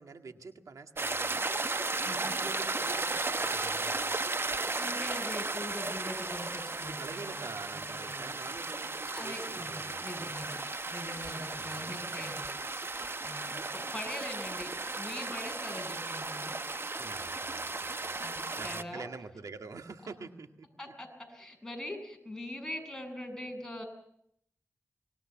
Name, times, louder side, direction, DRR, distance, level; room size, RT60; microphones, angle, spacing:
voice 1, 0.0-1.5 2.0-4.2 6.8-10.4 11.6-12.2 17.0-18.1 18.6-20.7, right 4 dB, 85° right, 6 dB, 2.0 m, -46 dB
sound 1, 1.0-18.8, right 3 dB, 45° right, 1.0 m, -35 dB
voice 2, 4.8-8.2 9.1-10.6 10.9-12.6 13.2-16.5 18.1-19.1 20.8-23.8, left 1 dB, 10° left, 3 dB, 7.7 m, -42 dB
25.5 x 20.0 x 7.1 m, 0.72 s
cardioid pair, 50°, 6 cm